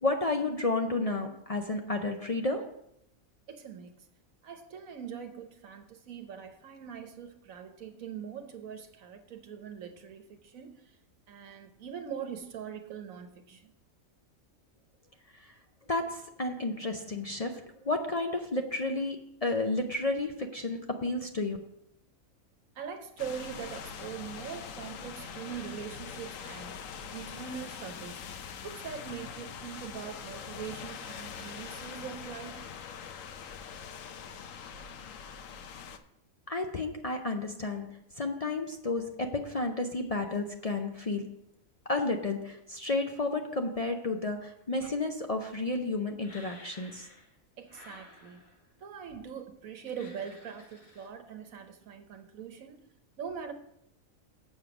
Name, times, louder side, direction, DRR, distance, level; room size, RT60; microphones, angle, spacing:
voice 1, 0.0-2.7 15.4-15.5 15.9-21.6 36.5-41.4 41.9-47.1, left 2 dB, 40° left, 0.5 m, -32 dB
voice 2, 3.5-3.9 4.4-10.8 11.3-13.6 22.8-26.8 27.1-28.3 28.6-32.7 47.6-48.5 48.8-52.8 53.2-53.5, right 7 dB, 80° right, 1.4 m, -42 dB
sound 1, 23.2-36.0, left 7 dB, 70° left, 1.1 m, -43 dB
sound 2, 46.2-47.4 47.7-48.7 49.9-51.1, left 2 dB, 90° left, 2.8 m, -53 dB
7.4 x 6.6 x 6.0 m
omnidirectional pair, 1.4 m